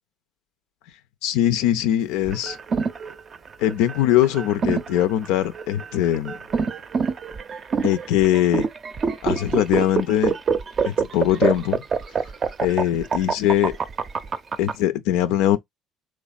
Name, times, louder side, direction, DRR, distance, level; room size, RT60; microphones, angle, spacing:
voice 1, 1.2-2.6 3.6-6.3 7.8-8.7 9.2-10.3 10.8-11.8 12.6-13.7 14.6-15.6, left 12 dB, 75° left, 0.3 m, -21 dB
sound 1, 2.3-14.7, right 5 dB, 45° right, 0.5 m, -25 dB
3.4 x 3.1 x 2.4 m
hypercardioid pair, 65°, 0 cm